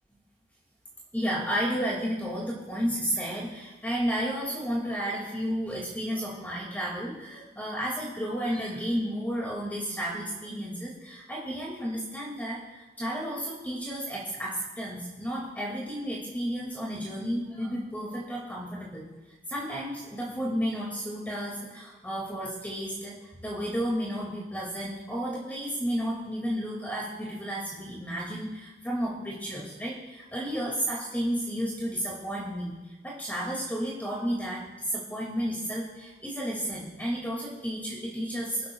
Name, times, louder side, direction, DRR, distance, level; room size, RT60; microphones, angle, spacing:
voice 1, 1.1-19.1 19.5-38.7, equal, 10° left, -4 dB, 2.2 m, -32 dB
26.0 x 11.5 x 2.3 m, 1.2 s
head